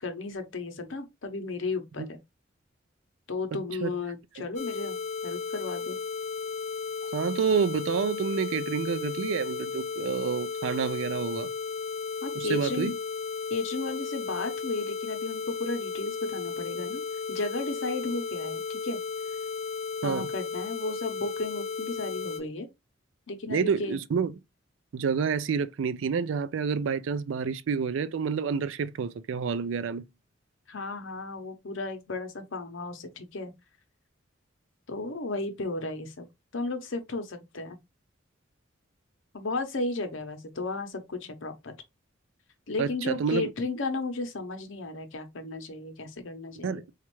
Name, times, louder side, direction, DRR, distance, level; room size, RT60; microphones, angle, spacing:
voice 1, 0.0-2.2 3.3-6.0 12.2-13.0 13.5-17.0 17.3-19.0 20.0-22.7 23.3-24.0 30.7-33.5 34.9-36.3 36.5-37.8 39.3-41.7 42.7-46.8, left 3 dB, 85° left, 0.8 m, -34 dB
voice 2, 3.5-3.9 4.4-4.5 7.1-11.5 12.4-12.9 20.0-20.3 23.5-24.3 24.9-30.1 42.8-43.5 46.6-46.9, right 6 dB, 80° right, 0.4 m, -29 dB
sound 1, 4.6-22.4, left 5 dB, 35° left, 0.5 m, -34 dB
4.2 x 2.4 x 2.9 m
head